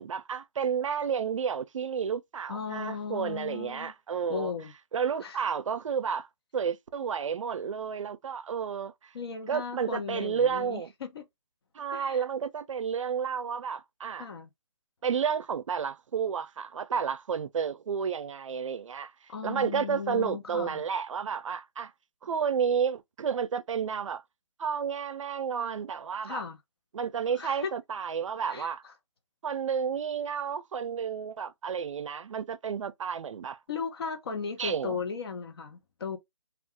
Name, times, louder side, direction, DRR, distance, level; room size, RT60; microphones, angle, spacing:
voice 1, 0.0-4.5 4.9-6.3 6.5-8.9 9.5-10.9 11.7-14.3 15.0-19.1 19.4-21.9 22.2-24.2 24.6-26.4 26.9-28.8 29.4-33.6 34.6-35.0, right 7 dB, 80° right, 0.4 m, -31 dB
voice 2, 2.5-3.9 4.3-4.7 5.2-5.4 9.1-11.3 11.9-12.2 14.2-14.5 19.3-20.8 26.2-26.6 27.3-27.7 28.5-28.9 33.7-36.2, left 5 dB, 50° left, 0.7 m, -36 dB
2.3 x 2.2 x 3.5 m
hypercardioid pair, 165°, 16 cm